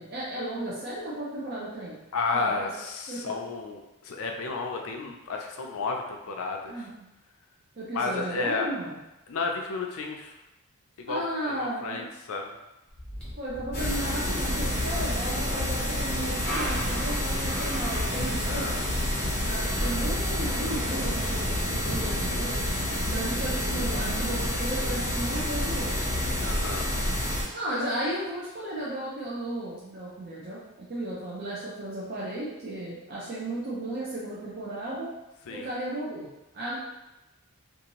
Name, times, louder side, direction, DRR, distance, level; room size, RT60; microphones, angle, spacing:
voice 1, 0.0-2.0 2.3-2.7 3.1-3.4 6.7-7.1 7.8-9.0 11.1-12.0 13.4-18.7 19.5-22.6 23.1-25.9 27.5-30.6 30.9-35.1 35.5-36.8, right 1 dB, 45° right, -7 dB, 0.6 m, -34 dB
voice 2, 2.1-6.9 7.9-8.7 9.3-10.3 11.0-12.5 18.5-18.7 26.4-26.9 35.5-35.7, left 4 dB, 65° left, 2 dB, 0.4 m, -32 dB
sound 1, 10.9-11.0 12.9-14.6 15.0-15.1 15.6-15.7 16.0-17.1 18.1-18.2 19.7-19.8 20.3-20.4 21.1-21.4 22.7-22.8 23.0-23.1 24.8-25.1 25.8-25.9, equal, 5° left, 0.8 m, -43 dB
sound 2, 13.7-27.4, left 1 dB, 40° left, 0.9 m, -28 dB
2.7 x 2.4 x 2.9 m, 0.97 s
head